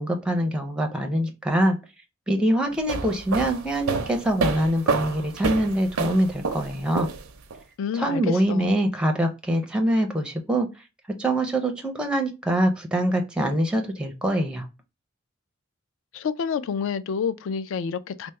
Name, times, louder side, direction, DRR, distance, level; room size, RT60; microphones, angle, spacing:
voice 1, 0.0-1.8 2.3-7.1 7.9-10.7 11.2-14.7, right 1 dB, 5° right, 0.4 m, -24 dB
sound 1, 2.7-7.6, right 4 dB, 80° right, 0.6 m, -28 dB
voice 2, 7.8-8.7 16.1-18.3, left 6 dB, 65° left, 0.3 m, -28 dB
3.3 x 2.0 x 4.2 m
head